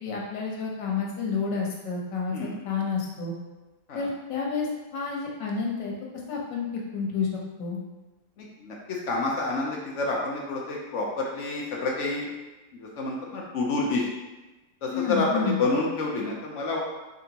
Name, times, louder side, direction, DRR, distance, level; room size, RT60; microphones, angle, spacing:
voice 1, 0.0-2.3 2.6-3.3 3.9-4.7 4.9-5.9 6.3-6.7 6.9-7.3 7.6-7.8 14.9-15.6, left 5 dB, 90° left, -2 dB, 1.6 m, -29 dB
voice 2, 8.4-12.3 12.7-14.1 14.8-16.8, left 3 dB, 60° left, -2 dB, 0.8 m, -29 dB
5.1 x 3.4 x 2.8 m, 1.1 s
omnidirectional pair, 1.9 m